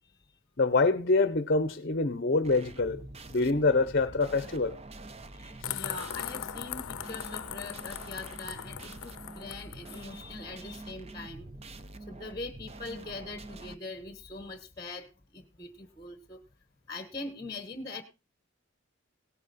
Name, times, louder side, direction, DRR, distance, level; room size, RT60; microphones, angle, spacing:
voice 1, 0.6-3.0 3.3-4.7 5.6-5.8, left 3 dB, 45° left, 0.7 m, -26 dB
sound 1, 2.4-13.8, right 2 dB, 30° right, 0.8 m, -46 dB
voice 2, 5.3-11.5 12.1-16.4 16.9-18.0, left 3 dB, 20° left, 1.0 m, -42 dB
sound 2, 5.6-10.0, left 10 dB, 85° left, 0.6 m, -39 dB
17.5 x 8.8 x 4.1 m
head